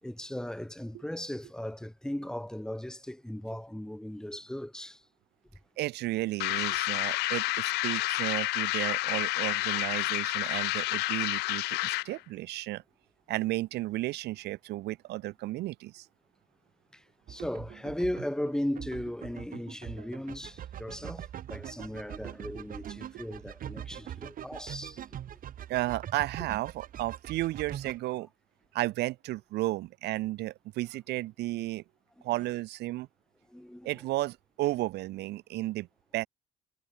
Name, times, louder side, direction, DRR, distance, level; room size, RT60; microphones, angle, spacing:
voice 1, 0.0-5.0 16.9-25.0 25.3-25.4 33.5-33.9, left 1 dB, 5° left, 4.0 m, -37 dB
voice 2, 5.8-12.8 13.3-16.1 25.7-28.3 28.7-31.8 32.2-33.1 33.8-35.9 36.1-36.3, right 17 dB, 80° right, 2.5 m, -33 dB
sound 1, 6.4-12.2, left 20 dB, 80° left, 0.4 m, -30 dB
sound 2, 17.3-28.0, right 10 dB, 55° right, 2.8 m, -42 dB
cardioid pair, 110°, 17 cm